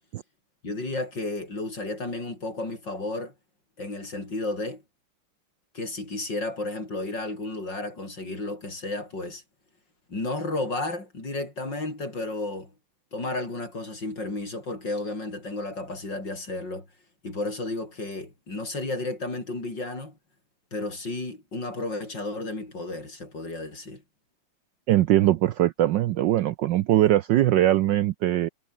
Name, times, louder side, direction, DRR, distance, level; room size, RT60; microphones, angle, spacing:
voice 1, 0.6-3.3 3.8-4.8 5.7-9.4 10.1-12.7 13.1-16.9 17.2-20.2 20.7-24.0, left 2 dB, 55° left, 7.8 m, -32 dB
voice 2, 24.9-28.5, right 13 dB, 70° right, 1.2 m, -21 dB
omnidirectional pair, 2.4 m